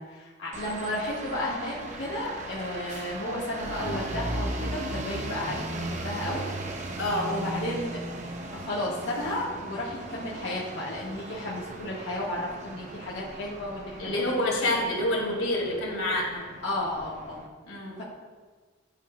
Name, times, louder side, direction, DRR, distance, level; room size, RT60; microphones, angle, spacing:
voice 1, 0.1-6.4 6.9-8.0 8.4-14.8 16.6-17.4 18.0-18.1, left 1 dB, 60° left, -7 dB, 1.5 m, -33 dB
sound 1, 0.5-17.5, right 2 dB, 35° right, 0.6 m, -37 dB
voice 2, 7.0-7.3 14.0-16.4 17.6-18.0, left 1 dB, 85° left, -1 dB, 2.1 m, -27 dB
12.0 x 8.3 x 2.2 m, 1.4 s
head